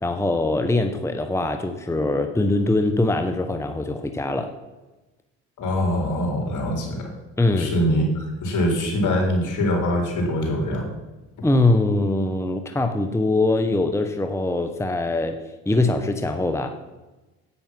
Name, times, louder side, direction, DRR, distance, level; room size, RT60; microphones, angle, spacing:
voice 1, 0.0-4.5 7.4-7.7 11.4-15.4 15.7-16.8, left 2 dB, 10° left, 6 dB, 0.9 m, -22 dB
voice 2, 5.6-7.0 7.5-10.9, equal, 60° left, 0 dB, 4.1 m, -23 dB
9.8 x 8.9 x 5.9 m, 1.1 s
supercardioid pair, 75°, 34 cm